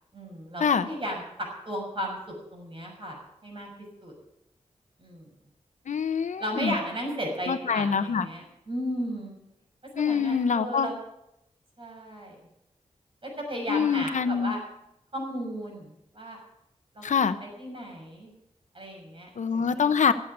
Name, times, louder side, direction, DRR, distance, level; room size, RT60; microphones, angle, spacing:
voice 1, 0.1-2.2 2.5-3.7 4.0-4.1 5.0-5.3 6.4-9.4 9.9-11.0 11.8-12.3 13.2-14.6 15.1-16.4 16.9-17.0 17.4-18.3 18.7-20.0, equal, 45° right, 0 dB, 6.6 m, -35 dB
voice 2, 5.9-6.7 7.5-8.3 9.9-10.9 13.7-14.5 17.0-17.4 19.4-20.1, left 6 dB, 85° left, 12 dB, 0.8 m, -25 dB
12.5 x 8.8 x 9.8 m, 0.84 s
wide cardioid pair, 70°, 12 cm